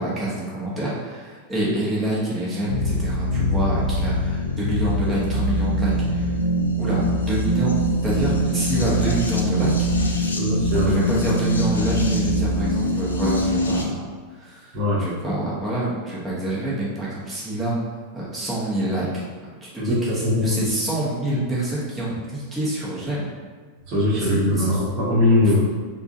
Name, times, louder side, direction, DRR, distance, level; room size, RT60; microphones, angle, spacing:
voice 1, 0.0-6.3 6.8-10.2 10.9-17.7 18.1-19.2 19.7-23.3 24.1-24.8, right 1 dB, 10° right, -8 dB, 1.1 m, -27 dB
sound 1, 2.7-13.8, equal, 75° left, 0.4 m, -23 dB
voice 2, 10.3-11.0 14.7-15.0 19.8-20.6 23.9-25.6, left 1 dB, 40° right, -6 dB, 1.1 m, -21 dB
3.6 x 2.4 x 2.6 m, 1.5 s
figure-of-eight pair, 90°, 0 cm